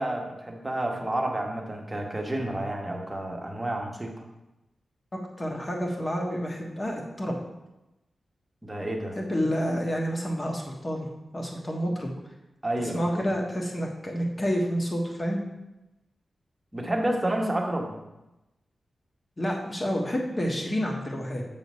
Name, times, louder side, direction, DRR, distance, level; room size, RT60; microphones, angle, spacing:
voice 1, 0.0-4.1 8.6-9.2 12.6-13.3 16.7-17.9, right 1 dB, 15° right, 1 dB, 1.2 m, -30 dB
voice 2, 5.1-7.4 9.1-11.1 11.3-12.1 12.8-15.4 19.4-21.4, equal, 25° left, 0 dB, 1.4 m, -29 dB
8.2 x 3.9 x 6.3 m, 0.96 s
wide cardioid pair, 145°, 0 cm